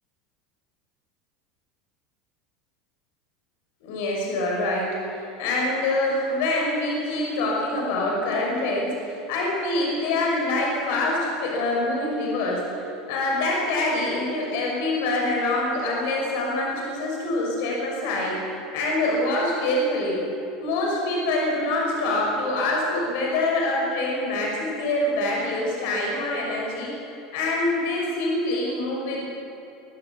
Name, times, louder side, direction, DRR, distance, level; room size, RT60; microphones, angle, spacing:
voice 1, 3.8-12.7 13.1-18.4 18.7-20.2 20.6-26.9 27.3-29.2, left 2 dB, 65° left, -2 dB, 6.0 m, -25 dB
24.0 x 14.5 x 7.9 m, 2.7 s
supercardioid pair, 175°, 0 cm